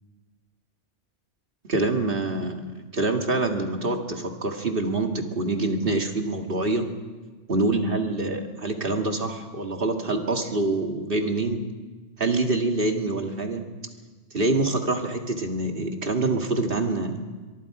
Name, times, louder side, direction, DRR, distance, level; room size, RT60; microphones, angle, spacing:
voice 1, 1.7-6.9 7.5-11.6 12.2-13.6 14.3-17.2, right 2 dB, 45° right, 3 dB, 2.1 m, -25 dB
24.0 x 23.0 x 4.9 m, 1.3 s
omnidirectional pair, 1.3 m